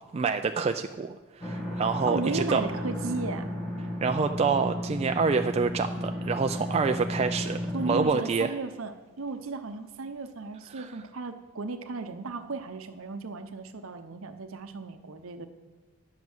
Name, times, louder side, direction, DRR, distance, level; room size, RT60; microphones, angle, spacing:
voice 1, 0.1-2.6 4.0-8.5 10.8-10.9, right 5 dB, 30° right, 6 dB, 0.3 m, -27 dB
sound 1, 1.4-8.0, left 1 dB, 25° left, 1.3 m, -34 dB
voice 2, 2.1-3.5 7.7-15.5, right 3 dB, 65° right, 9 dB, 0.8 m, -35 dB
10.5 x 7.4 x 6.1 m, 1.2 s
head